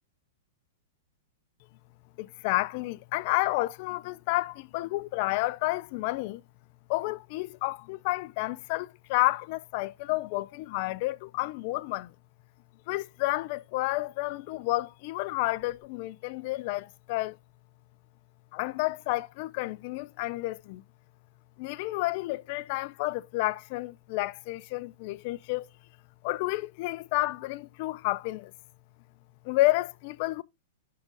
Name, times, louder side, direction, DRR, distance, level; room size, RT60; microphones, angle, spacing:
voice 1, 2.2-6.4 6.9-12.1 12.9-17.4 18.5-20.8 21.6-25.7 26.2-28.5 29.4-30.4, left 20 dB, 50° left, 0.5 m, -30 dB
11.0 x 3.8 x 5.3 m
hypercardioid pair, 140°, 0 cm